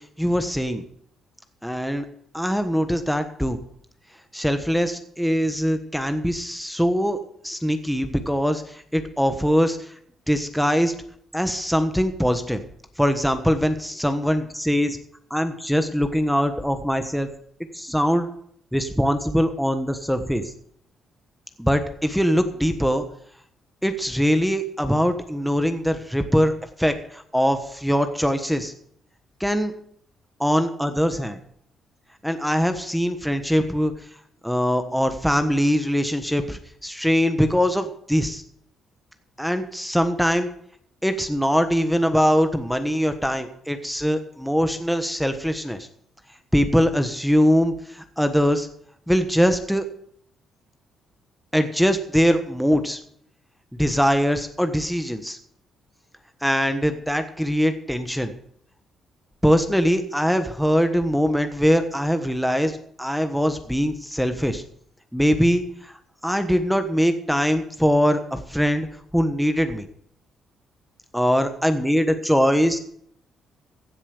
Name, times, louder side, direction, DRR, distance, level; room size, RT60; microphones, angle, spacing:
voice 1, 0.2-0.8 1.6-2.0 2.3-3.6 4.3-7.2 7.4-9.8 10.3-10.9 11.3-12.6 13.0-15.0 15.3-17.3 17.7-18.3 18.7-20.4 21.6-23.0 23.8-26.5 26.8-28.7 29.4-29.7 30.4-31.4 32.2-33.9 34.4-38.4 39.4-40.5 41.0-45.8 46.5-48.7 49.1-49.8 51.5-53.0 53.8-55.4 56.4-58.3 59.4-64.6 65.1-65.9 66.2-68.9 69.1-69.8 71.1-72.8, equal, ahead, 7 dB, 1.3 m, -22 dB
15.5 x 7.2 x 6.6 m, 0.66 s
cardioid pair, 90°, 0 cm